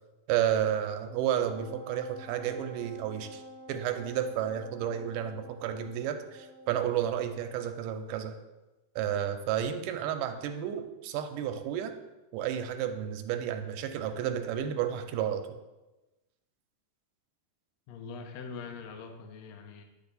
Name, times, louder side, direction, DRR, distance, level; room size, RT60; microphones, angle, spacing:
voice 1, 0.3-3.4 3.7-8.4 9.0-12.0 12.3-15.4, right 10 dB, 80° right, 7 dB, 2.1 m, -31 dB
Wind instrument woodwind instrument, 1.1-7.7, equal, 20° left, 0.6 m, -50 dB
voice 2, 17.9-19.8, left 5 dB, 80° left, 4 dB, 1.5 m, -43 dB
9.8 x 3.7 x 4.0 m, 1.1 s
omnidirectional pair, 3.9 m